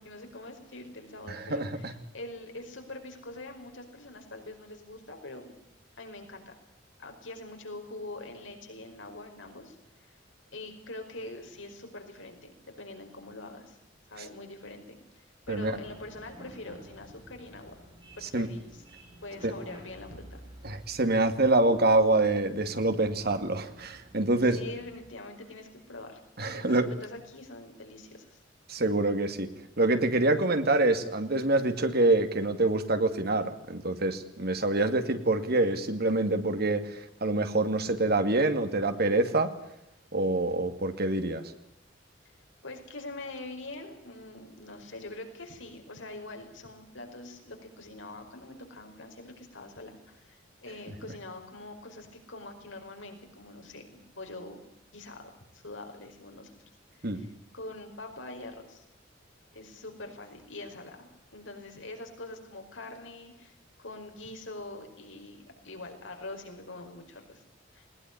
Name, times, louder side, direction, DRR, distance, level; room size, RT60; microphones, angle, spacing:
voice 1, 0.0-1.9 2.1-5.5 6.0-6.5 7.0-9.8 10.0-10.1 10.5-13.8 14.1-17.8 18.2-18.8 19.2-20.4 24.5-26.2 26.5-28.4 42.6-54.6 54.9-56.5 57.0-58.8 59.5-67.4 67.7-67.9, left 2 dB, 75° left, 4 dB, 5.1 m, -44 dB
voice 2, 1.3-1.9 15.5-15.8 18.2-18.5 19.4-19.5 20.6-24.6 26.4-26.9 28.7-29.5 29.8-39.5 40.1-41.4 57.0-57.3, right 2 dB, 55° right, 8 dB, 2.4 m, -26 dB
sound 1, 15.4-25.1, right 1 dB, 25° right, 7.4 m, -52 dB
20.0 x 20.0 x 9.8 m, 0.79 s
head